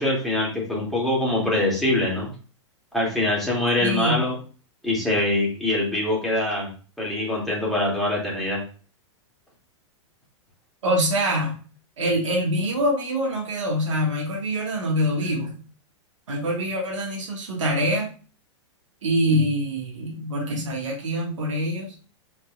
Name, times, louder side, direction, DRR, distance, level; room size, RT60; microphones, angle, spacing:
voice 1, 0.0-2.3 2.9-4.3 4.8-6.7 7.0-8.6, left 1 dB, ahead, -6 dB, 2.5 m, -23 dB
voice 2, 3.8-4.2 10.8-11.6 12.0-15.6 16.3-18.1 19.0-21.9, equal, 80° right, -1 dB, 1.8 m, -25 dB
4.6 x 4.5 x 2.4 m, 0.39 s
hypercardioid pair, 115°, 16 cm